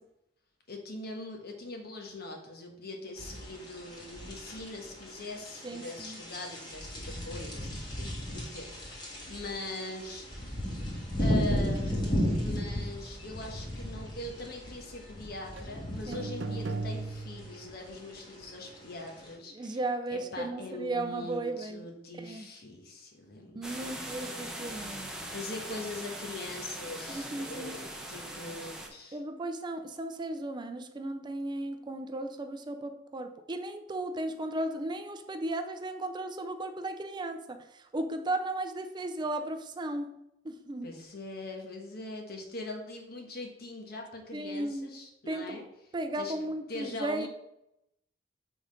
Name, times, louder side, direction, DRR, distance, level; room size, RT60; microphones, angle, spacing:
voice 1, 0.7-10.6 11.2-19.8 20.1-23.6 25.3-29.2 40.8-45.6 46.2-46.3 46.7-47.3, left 2 dB, 60° left, 2 dB, 1.2 m, -42 dB
sound 1, 3.2-19.3, equal, 25° left, 1.6 m, -35 dB
voice 2, 5.6-6.2 16.1-16.3 19.5-21.9 22.2-22.5 23.5-25.2 27.1-27.8 29.1-40.1 40.4-40.9 44.3-44.9 45.3-45.6 45.9-47.3, right 2 dB, 25° right, 7 dB, 0.4 m, -35 dB
sound 2, 15.6-15.7 16.1-17.7, right 3 dB, 90° right, 0.7 m, -36 dB
sound 3, 23.6-28.9, right 1 dB, 5° right, 0.8 m, -41 dB
5.3 x 3.8 x 5.0 m, 0.84 s
head